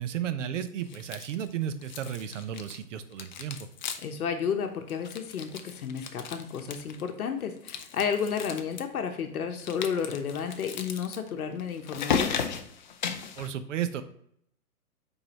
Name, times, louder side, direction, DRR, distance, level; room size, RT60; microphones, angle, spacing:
voice 1, 0.0-3.6 13.4-14.0, right 9 dB, 55° right, 10 dB, 0.8 m, -33 dB
sound 1, 0.9-1.5 1.8-2.8 3.1-4.2 4.5-4.6 4.9-7.1 7.6-8.8 9.6-13.5, left 6 dB, 35° left, 0.4 m, -35 dB
voice 2, 4.0-12.4, left 7 dB, 70° left, 6 dB, 1.0 m, -32 dB
8.7 x 4.0 x 2.9 m, 0.69 s
hypercardioid pair, 125°, 46 cm